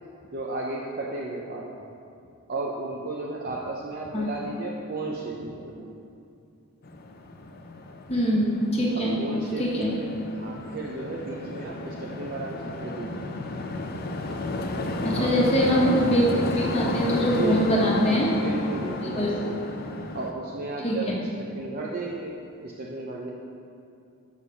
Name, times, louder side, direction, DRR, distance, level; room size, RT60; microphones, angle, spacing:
voice 1, 0.3-2.0 2.5-6.0 8.9-13.7 15.1-15.5 17.3-18.1 18.3-19.7 20.1-22.4 22.6-23.3, right 2 dB, 45° right, -3 dB, 0.6 m, -34 dB
sound 1, 6.8-20.3, left 2 dB, 45° left, 0.6 m, -32 dB
voice 2, 8.1-9.2 9.6-9.9 15.0-18.3 19.2-19.4 20.8-21.0, equal, 25° left, -4 dB, 1.2 m, -23 dB
7.3 x 6.3 x 5.6 m, 2.6 s
head